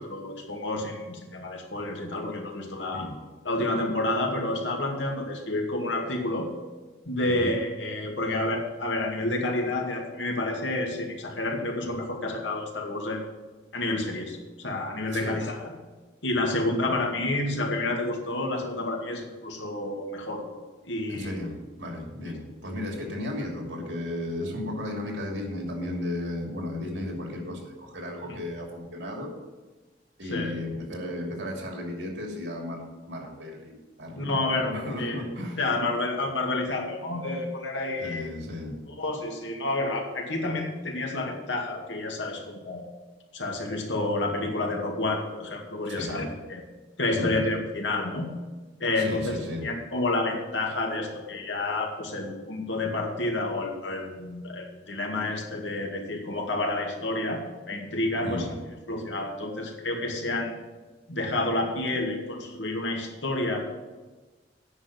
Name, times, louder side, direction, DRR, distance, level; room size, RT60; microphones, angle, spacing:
voice 1, 0.0-3.1 3.4-6.5 7.1-13.2 13.7-15.6 16.2-20.4 20.9-21.4 30.3-30.5 34.2-35.2 35.6-38.3 38.9-42.9 43.3-46.6 47.0-48.3 48.8-49.4 49.6-57.4 57.7-58.5 58.9-60.6 61.1-63.6, left 2 dB, 85° left, 1 dB, 2.1 m, -29 dB
voice 2, 21.1-29.3 30.2-35.6 38.0-38.7 45.8-46.3 47.1-47.4 49.0-49.6 58.2-58.6, left 1 dB, 80° right, 1 dB, 2.9 m, -34 dB
9.5 x 6.2 x 8.7 m, 1.3 s
head